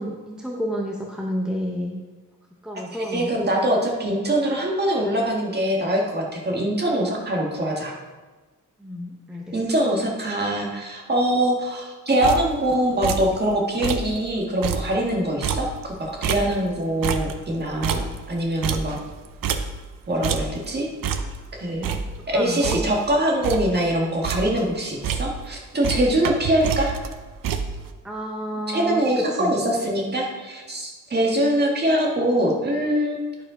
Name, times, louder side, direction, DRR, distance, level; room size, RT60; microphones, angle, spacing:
voice 1, 0.0-2.0 2.6-3.3 8.8-9.6 22.3-23.0 28.0-29.6, equal, ahead, -1 dB, 0.8 m, -30 dB
voice 2, 3.1-7.9 9.5-19.0 20.1-20.9 21.6-21.8 22.3-26.9 28.7-33.2, right 1 dB, 30° right, -1 dB, 1.7 m, -23 dB
sound 1, 12.2-12.7 13.0-13.4 13.7-14.2 14.5-16.8 17.0-20.0 20.2-20.7 21.0-21.5 21.8-23.1 23.4-23.8 24.1-24.7 25.0-25.6 25.8-27.9, right 6 dB, 90° right, 0.7 m, -28 dB
10.5 x 5.3 x 5.0 m, 1.3 s
wide cardioid pair, 145°, 32 cm